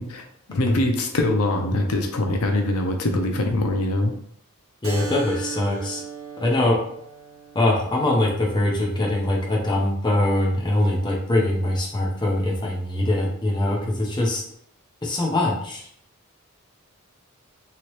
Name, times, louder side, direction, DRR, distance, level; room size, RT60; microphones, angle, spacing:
voice 1, 0.0-4.1, left 1 dB, 80° left, 4 dB, 0.6 m, -23 dB
voice 2, 4.8-6.0 6.4-6.8 7.5-14.4 15.0-15.9, left 1 dB, 20° left, -2 dB, 0.6 m, -22 dB
Keyboard (musical), 4.8-10.0, right 6 dB, 70° right, 0.7 m, -38 dB
3.0 x 2.9 x 3.0 m, 0.67 s
head